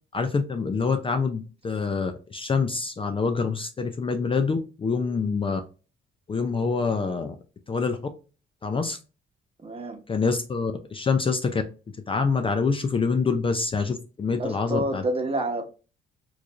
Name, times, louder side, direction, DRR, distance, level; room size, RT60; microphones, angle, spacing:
voice 1, 0.1-5.6 6.3-7.4 7.7-8.0 8.6-9.0 10.1-11.6 12.1-15.0, left 4 dB, 25° left, 0.4 m, -26 dB
voice 2, 9.6-10.0 14.4-15.7, right 1 dB, 30° right, 1.0 m, -28 dB
4.5 x 2.5 x 2.4 m
cardioid pair, 90°, 20 cm